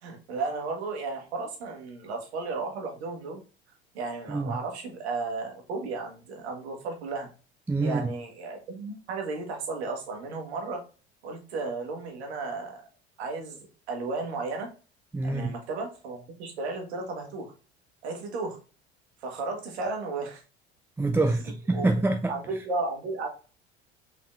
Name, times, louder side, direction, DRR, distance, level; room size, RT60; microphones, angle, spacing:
voice 1, 0.0-3.4 3.9-7.3 7.8-10.8 11.2-12.8 13.2-14.7 15.2-17.5 18.0-18.6 19.2-20.4 21.7-21.9 22.3-23.3, right 3 dB, 75° right, 1.3 m, -34 dB
voice 2, 7.7-8.1 15.1-15.5 21.0-22.4, right 2 dB, 5° right, 0.4 m, -26 dB
5.3 x 3.9 x 2.4 m
hypercardioid pair, 70°, 33 cm